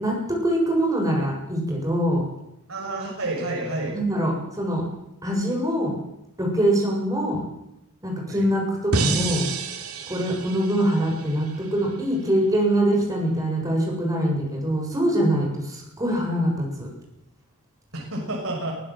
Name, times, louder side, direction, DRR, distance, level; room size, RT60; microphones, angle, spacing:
voice 1, 0.0-2.2 3.9-4.8 5.2-6.0 6.4-7.4 8.0-9.5 10.1-16.9, right 1 dB, 15° right, 0 dB, 7.6 m, -23 dB
voice 2, 2.7-3.9 8.3-8.5 17.9-18.7, right 2 dB, 70° right, -2 dB, 6.3 m, -29 dB
sound 1, 8.9-12.1, right 3 dB, 90° right, 3.1 m, -29 dB
24.0 x 15.5 x 7.8 m, 0.84 s
head